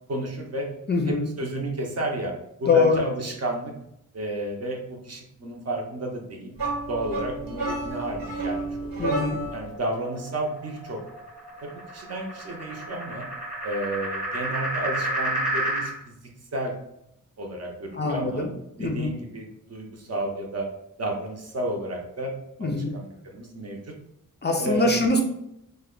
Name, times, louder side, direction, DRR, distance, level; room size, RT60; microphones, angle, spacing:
voice 1, 0.1-0.7 1.0-2.3 2.6-3.7 4.1-6.5 6.9-9.1 9.5-11.0 11.6-13.2 13.6-16.1 16.5-16.7 17.4-18.5 18.8-20.7 21.0-22.3 22.6-23.8 24.6-25.0, right 1 dB, 45° right, 1 dB, 0.7 m, -32 dB
voice 2, 0.9-1.3 2.7-3.0 9.0-9.4 17.9-18.5 18.8-19.1 22.6-22.9 24.4-25.2, left 3 dB, 30° left, 2 dB, 0.4 m, -23 dB
sound 1, 6.6-9.7, right 2 dB, 90° right, 1.2 m, -30 dB
sound 2, 9.2-15.9, right 1 dB, ahead, 1.0 m, -32 dB
3.3 x 2.2 x 3.7 m, 0.80 s
wide cardioid pair, 115°, 34 cm